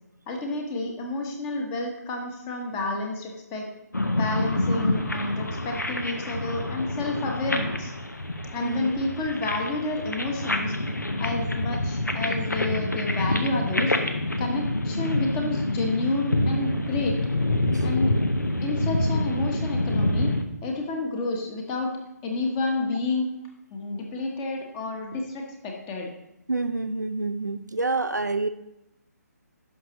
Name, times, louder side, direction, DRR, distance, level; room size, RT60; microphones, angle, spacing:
voice 1, 0.3-3.7 4.1-7.9 8.5-10.7 11.2-13.9 14.4-17.2 17.8-18.1 18.6-20.3 20.6-21.9 22.2-23.3 23.7-26.1, left 2 dB, 20° left, 2 dB, 1.0 m, -30 dB
sound 1, 3.9-20.4, left 1 dB, 85° left, 0.9 m, -27 dB
voice 2, 8.6-9.0 17.7-17.9 26.5-28.5, right 3 dB, 90° right, 10 dB, 0.6 m, -28 dB
11.0 x 5.9 x 3.0 m, 0.86 s
figure-of-eight pair, 145°, 9 cm